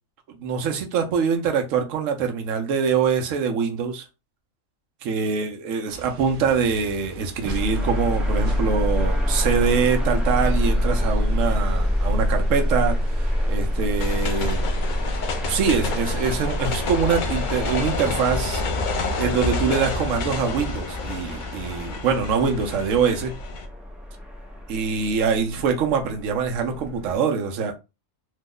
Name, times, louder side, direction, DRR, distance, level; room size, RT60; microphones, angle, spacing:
voice 1, 0.4-4.0 5.0-14.7 15.5-18.6 19.2-23.3 24.7-27.7, right 6 dB, 75° right, 1.0 m, -24 dB
sound 1, 5.9-21.9, right 2 dB, 50° right, 0.6 m, -42 dB
sound 2, 7.5-27.2, equal, ahead, 0.3 m, -26 dB
sound 3, 14.0-23.7, left 3 dB, 70° left, 0.4 m, -29 dB
3.0 x 2.0 x 3.6 m
omnidirectional pair, 1.4 m